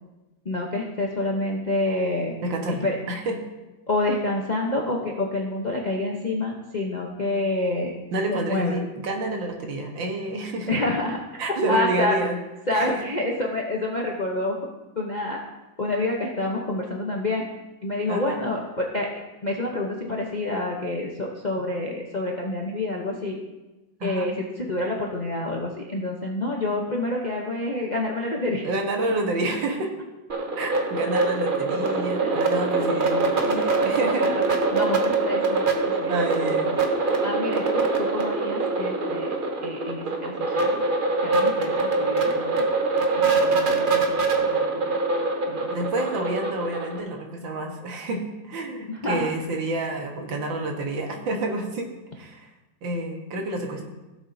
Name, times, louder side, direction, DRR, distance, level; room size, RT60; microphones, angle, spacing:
voice 1, 0.4-2.3 2.8-3.0 3.9-7.9 8.3-8.8 10.7-11.2 11.7-12.2 12.7-14.6 15.0-15.4 15.8-17.4 17.8-19.1 19.4-23.4 24.0-28.7 32.2-32.6 34.0-36.2 36.7-36.8 37.2-39.3 39.6-40.9 41.2-42.7 43.1-44.9 45.5-45.7 48.9-49.3, left 2 dB, 45° left, -1 dB, 0.6 m, -28 dB
voice 2, 2.4-3.4 8.1-10.8 11.4-12.4 12.7-13.0 18.1-18.4 24.0-24.3 28.6-29.9 30.6-34.3 36.1-36.7 45.7-51.9 52.2-52.5 52.8-53.8, right 2 dB, 75° right, 2 dB, 2.0 m, -29 dB
sound 1, 30.3-47.0, right 3 dB, 45° right, 0.7 m, -24 dB
16.5 x 7.1 x 2.7 m, 1.1 s
omnidirectional pair, 2.1 m